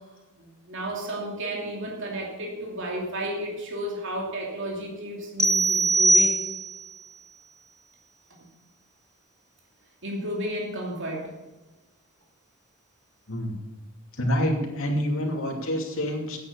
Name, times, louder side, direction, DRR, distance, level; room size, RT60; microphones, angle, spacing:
voice 1, 0.4-6.4 10.0-11.3, right 1 dB, 60° right, -1 dB, 2.8 m, -32 dB
sound 1, 5.4-6.9, right 2 dB, ahead, 0.5 m, -21 dB
voice 2, 14.1-16.4, equal, 70° left, 1 dB, 2.8 m, -27 dB
10.0 x 8.8 x 6.8 m, 1.1 s
head